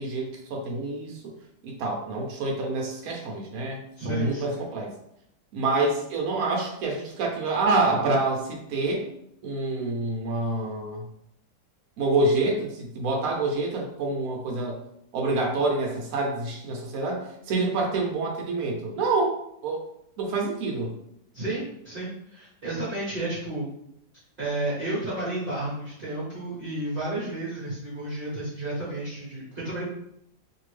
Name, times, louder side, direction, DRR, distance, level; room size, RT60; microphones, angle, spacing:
voice 1, 0.0-1.3 1.6-4.9 5.5-9.1 9.4-11.0 12.0-14.8 15.1-19.4 19.6-19.8 20.2-20.9, right 2 dB, 70° right, 0 dB, 0.9 m, -27 dB
voice 2, 4.0-4.6 21.3-23.7 24.4-29.8, right 2 dB, 40° right, -9 dB, 0.8 m, -32 dB
2.7 x 2.6 x 3.1 m, 0.77 s
omnidirectional pair, 1.9 m